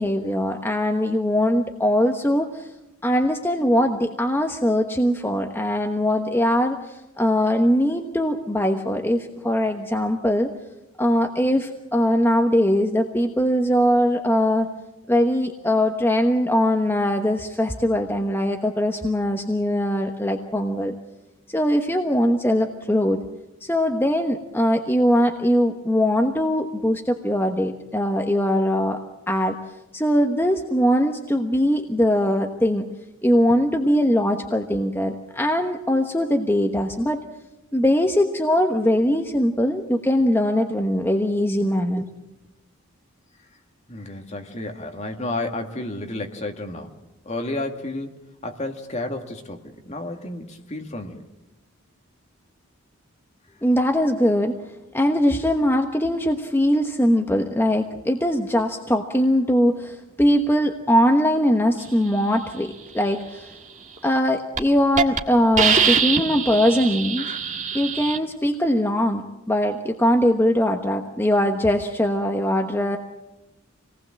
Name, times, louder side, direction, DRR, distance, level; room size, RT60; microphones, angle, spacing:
voice 1, 0.0-2.7 3.0-10.5 11.0-14.7 15.1-20.9 21.5-23.2 23.6-29.0 29.3-29.6 29.9-32.9 33.2-37.2 37.7-42.1 53.6-54.5 54.9-63.5 64.0-67.3 67.7-73.0, equal, 10° left, 4 dB, 1.1 m, -21 dB
voice 2, 43.9-46.9 47.3-48.2 48.4-51.2, left 2 dB, 35° left, 4 dB, 2.0 m, -31 dB
Hiss, 64.0-64.2 64.6-64.7 65.0-65.2 65.6-68.2, right 6 dB, 35° right, 1.7 m, -22 dB
27.0 x 19.0 x 7.6 m, 0.97 s
head